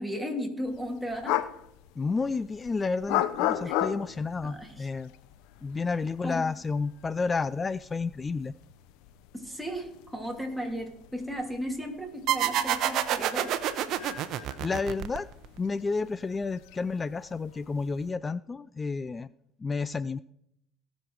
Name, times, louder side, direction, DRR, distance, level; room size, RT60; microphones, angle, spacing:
voice 1, 0.0-1.4 3.6-3.8 4.4-4.9 6.2-6.5 9.3-13.6, equal, ahead, 1 dB, 2.7 m, -35 dB
sound 1, 0.7-18.1, left 12 dB, 75° left, 0.7 m, -38 dB
voice 2, 2.0-5.1 5.6-8.5 14.3-15.3 15.6-19.3 19.6-20.2, left 4 dB, 25° left, 18 dB, 0.3 m, -31 dB
sound 2, 12.3-15.6, right 11 dB, 60° right, 0.8 m, -28 dB
18.0 x 6.4 x 4.6 m, 0.75 s
supercardioid pair, 90°, 0 cm